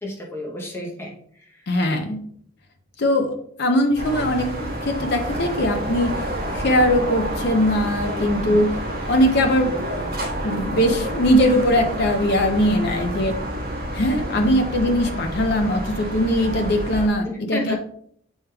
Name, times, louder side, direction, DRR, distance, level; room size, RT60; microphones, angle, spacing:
voice 1, 0.0-1.1 14.3-14.5 17.2-17.8, left 1 dB, 10° left, 0 dB, 0.7 m, -31 dB
voice 2, 1.7-2.2 3.0-3.3 3.6-6.1 6.5-8.8 9.1-9.7 10.4-13.4 13.9-17.8, equal, 55° left, 5 dB, 0.6 m, -20 dB
sound 1, 4.0-17.1, right 1 dB, 50° right, 1.3 m, -29 dB
7.2 x 3.3 x 2.2 m, 0.64 s
head